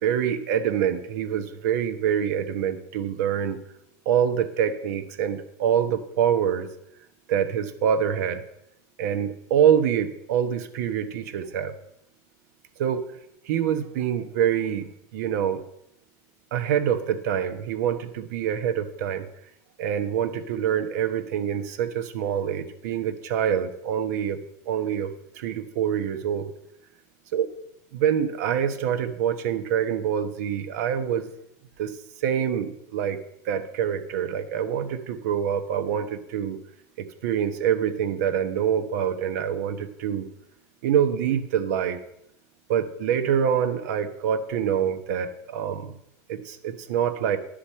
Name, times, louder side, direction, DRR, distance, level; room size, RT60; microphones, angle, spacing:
voice 1, 0.0-3.6 4.0-6.7 7.3-8.4 9.0-11.7 12.8-13.1 13.4-15.6 16.5-19.3 19.8-26.5 27.3-27.5 27.9-31.3 31.8-33.2 33.4-36.6 37.0-40.3 40.8-42.0 42.7-45.9 46.3-47.4, right 9 dB, 85° right, 8 dB, 1.1 m, -25 dB
11.5 x 5.1 x 7.4 m, 0.79 s
supercardioid pair, 130°, 9 cm